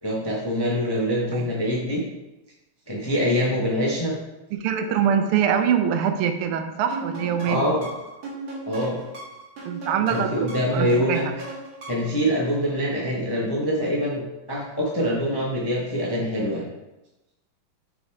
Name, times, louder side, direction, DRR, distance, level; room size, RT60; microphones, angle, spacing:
voice 1, 0.0-2.0 2.9-4.2 7.4-7.9 8.7-9.0 10.1-11.2 11.9-14.2 14.5-16.6, equal, 25° left, -4 dB, 0.5 m, -24 dB
voice 2, 4.5-7.7 9.6-11.2, right 8 dB, 85° right, 7 dB, 1.6 m, -24 dB
sound 1, 6.9-12.2, right 2 dB, 65° right, 2.2 m, -36 dB
6.2 x 4.9 x 3.5 m, 0.98 s
omnidirectional pair, 2.4 m